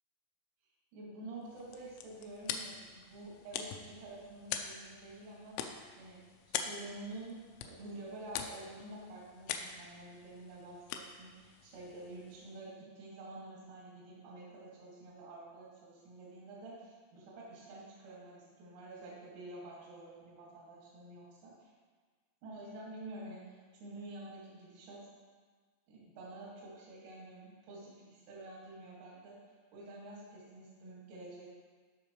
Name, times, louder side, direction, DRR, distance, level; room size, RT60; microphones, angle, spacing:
voice 1, 0.9-6.2 6.5-21.7 22.4-25.0 25.9-29.4 29.7-31.5, right 2 dB, 85° right, -6 dB, 5.2 m, -49 dB
sound 1, 1.4-12.6, left 8 dB, 85° left, 2.9 m, -44 dB
16.5 x 6.0 x 3.1 m, 1.5 s
omnidirectional pair, 6.0 m